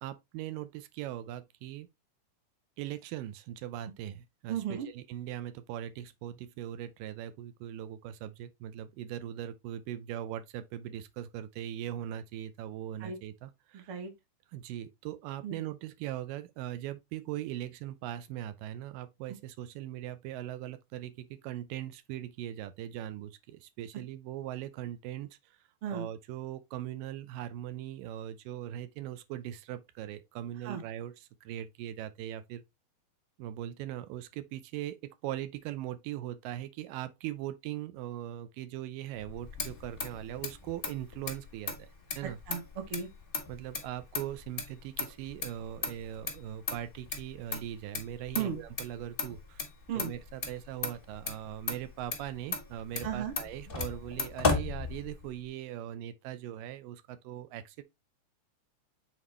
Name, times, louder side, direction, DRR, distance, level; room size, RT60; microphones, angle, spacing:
voice 1, 0.0-1.9 2.8-14.0 14.5-25.3 25.9-32.6 33.4-35.0 35.2-41.9 42.2-42.4 43.5-49.6 49.9-57.8, right 12 dB, 90° right, 2.4 m, -40 dB
voice 2, 4.5-4.9 13.0-13.2 13.7-14.1 15.4-15.6 25.8-26.1 30.7-30.8 42.5-43.1 48.4-48.6 49.9-50.1 53.0-53.3, right 8 dB, 55° right, 1.7 m, -35 dB
Motor vehicle (road), 39.2-55.4, left 4 dB, 85° left, 0.5 m, -37 dB
7.4 x 4.2 x 3.2 m
omnidirectional pair, 3.8 m